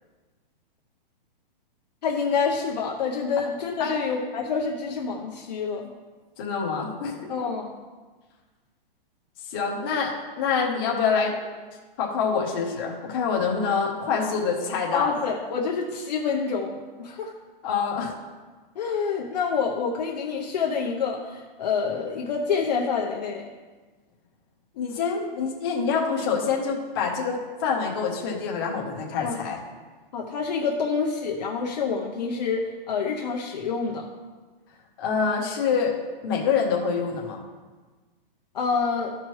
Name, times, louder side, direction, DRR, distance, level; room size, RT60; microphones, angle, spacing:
voice 1, 2.0-5.9 7.3-7.7 14.1-14.4 14.9-17.3 18.8-23.4 29.2-29.4 30.1-34.1 38.5-39.2, left 5 dB, 45° left, 0 dB, 0.7 m, -27 dB
voice 2, 6.4-7.3 9.5-11.3 12.0-15.1 17.6-18.1 24.7-29.6 35.0-35.9 36.2-37.4, left 5 dB, 25° left, -2 dB, 0.9 m, -26 dB
13.0 x 4.6 x 3.1 m, 1.3 s
hypercardioid pair, 180°, 29 cm